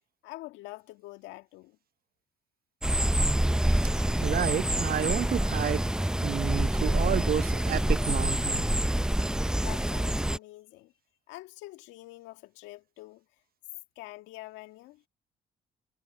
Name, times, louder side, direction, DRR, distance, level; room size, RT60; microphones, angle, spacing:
voice 1, 0.2-1.8 9.6-10.9 11.3-13.2 14.0-15.0, left 19 dB, 85° left, 2.0 m, -45 dB
sound 1, 2.8-10.4, right 1 dB, 5° right, 0.6 m, -26 dB
voice 2, 3.8-5.9 6.2-8.7, right 9 dB, 55° right, 0.9 m, -31 dB
hypercardioid pair, 55°, 19 cm